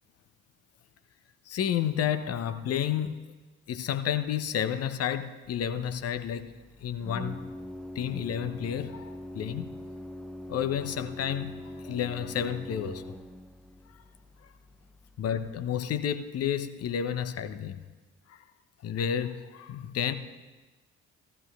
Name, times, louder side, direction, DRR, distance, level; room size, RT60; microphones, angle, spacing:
voice 1, 1.5-3.2 3.7-6.5 6.8-7.4 7.9-9.7 10.5-13.1 15.2-17.8 18.3-18.4 18.8-20.1, left 9 dB, 45° left, 0.8 m, -31 dB
Organ, 5.4-15.6, left 1 dB, ahead, 0.6 m, -43 dB
16.0 x 13.5 x 2.4 m
figure-of-eight pair, 45°, 34 cm